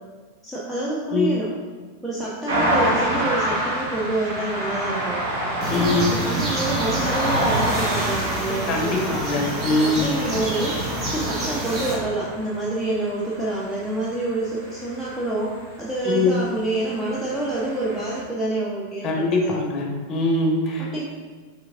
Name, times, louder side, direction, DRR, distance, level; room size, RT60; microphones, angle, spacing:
voice 1, 0.4-1.5 2.0-5.2 5.7-9.2 9.8-10.8 11.0-19.5 20.8-21.0, right 2 dB, 5° right, -7 dB, 0.7 m, -27 dB
sound 1, 2.5-15.7 16.6-18.2, right 1 dB, 55° right, 1.3 m, -28 dB
sound 2, 5.6-12.0, right 1 dB, 30° right, 1.1 m, -28 dB
voice 2, 5.7-6.1 8.7-10.2 16.0-16.4 19.0-20.9, left 3 dB, 30° left, 1 dB, 0.8 m, -22 dB
6.1 x 3.4 x 2.5 m, 1.4 s
figure-of-eight pair, 90°, 0 cm